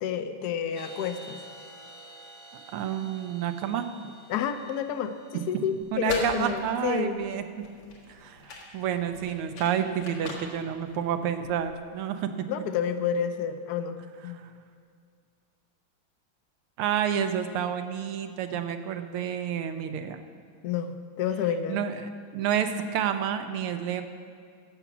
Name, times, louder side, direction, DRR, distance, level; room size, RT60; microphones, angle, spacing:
voice 1, 0.0-1.4 4.3-7.2 12.5-14.0 14.2-14.4 20.6-21.9, left 7 dB, 70° left, 9 dB, 1.0 m, -30 dB
sound 1, 0.7-6.3, right 2 dB, 55° right, 1.4 m, -49 dB
voice 2, 2.7-4.1 5.3-7.4 8.1-12.3 14.3-14.5 16.8-20.2 21.7-24.0, right 9 dB, 85° right, 8 dB, 1.7 m, -30 dB
sound 2, 5.8-11.8, left 2 dB, 85° left, 2.8 m, -40 dB
16.0 x 6.0 x 7.2 m, 2.1 s
omnidirectional pair, 2.4 m